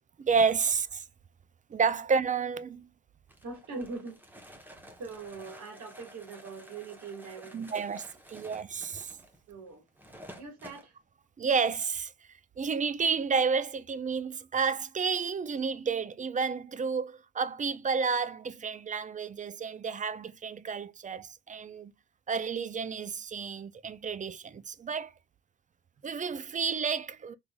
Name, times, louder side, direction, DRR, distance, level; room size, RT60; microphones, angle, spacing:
voice 1, 0.2-1.0 1.7-2.9 7.5-9.2 11.4-12.1 12.6-21.9 22.3-25.1 26.0-27.3, right 5 dB, 25° right, 0.4 m, -30 dB
sound 1, 3.3-10.9, equal, 5° right, 0.9 m, -51 dB
voice 2, 3.4-4.2 5.0-7.7 9.5-9.8 10.4-10.9, right 4 dB, 70° right, 1.8 m, -42 dB
3.7 x 3.2 x 2.3 m
cardioid pair, 90°, 30 cm